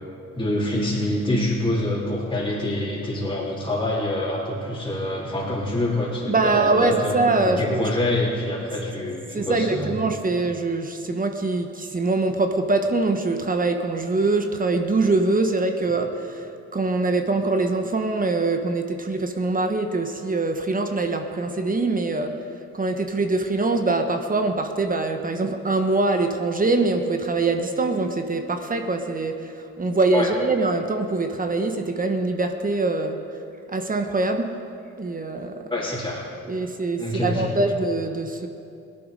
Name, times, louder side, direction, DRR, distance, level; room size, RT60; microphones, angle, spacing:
voice 1, 0.4-10.0 30.1-30.3 35.7-36.2 37.0-37.5, left 1 dB, 15° left, -9 dB, 3.4 m, -26 dB
voice 2, 6.3-7.9 9.3-22.3 22.7-33.2 33.7-34.5 35.0-35.7 36.5-38.5, right 3 dB, 30° right, 6 dB, 1.1 m, -23 dB
17.5 x 11.5 x 5.2 m, 2.6 s
cardioid pair, 90°, 30 cm